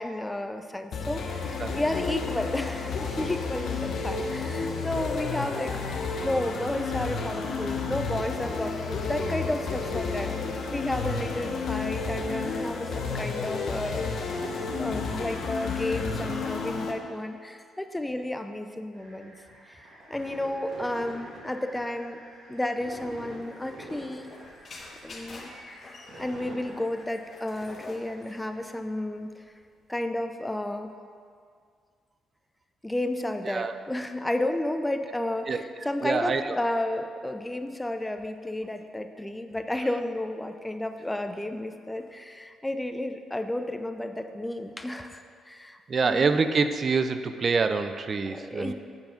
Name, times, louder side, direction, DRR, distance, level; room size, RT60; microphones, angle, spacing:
voice 1, 0.0-5.8 6.2-14.5 14.8-19.3 19.7-22.2 22.5-24.3 25.0-25.9 26.2-29.4 29.9-30.9 32.8-46.3 48.3-48.7, left 1 dB, 10° left, 7 dB, 0.5 m, -32 dB
sound 1, 0.9-16.9, left 4 dB, 65° left, 0.9 m, -31 dB
sound 2, 18.9-28.7, right 1 dB, 60° right, 1.9 m, -47 dB
sound 3, 23.3-30.2, left 2 dB, 40° left, 1.1 m, -48 dB
voice 2, 36.0-36.6 45.9-48.7, right 4 dB, 45° right, 10 dB, 0.4 m, -26 dB
8.0 x 4.6 x 5.1 m, 2.1 s
cardioid pair, 90°, 0 cm